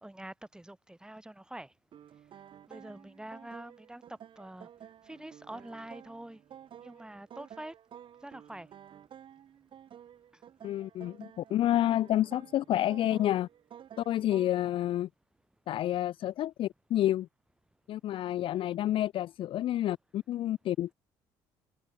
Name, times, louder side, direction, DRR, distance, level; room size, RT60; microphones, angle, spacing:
voice 1, 0.0-1.7 2.7-4.0 4.4-4.7 5.1-6.4 6.8-7.7 8.2-8.7, right 1 dB, 5° right, 3.6 m, -45 dB
sound 1, 1.9-14.7, right 9 dB, 55° right, 4.8 m, -52 dB
voice 2, 10.6-13.5 14.0-15.1 15.7-17.3 17.9-20.9, left 13 dB, 60° left, 0.5 m, -29 dB
supercardioid pair, 80°, 10 cm